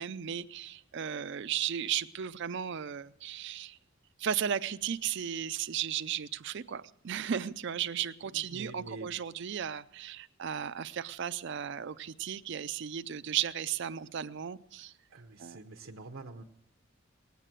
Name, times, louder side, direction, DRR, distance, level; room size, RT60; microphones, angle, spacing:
voice 1, 0.0-3.8 4.2-14.9 15.4-15.6, right 9 dB, 60° right, 13 dB, 0.5 m, -35 dB
voice 2, 8.3-9.1 15.1-16.4, right 2 dB, 80° right, 3 dB, 0.9 m, -46 dB
19.0 x 8.3 x 7.5 m, 0.80 s
head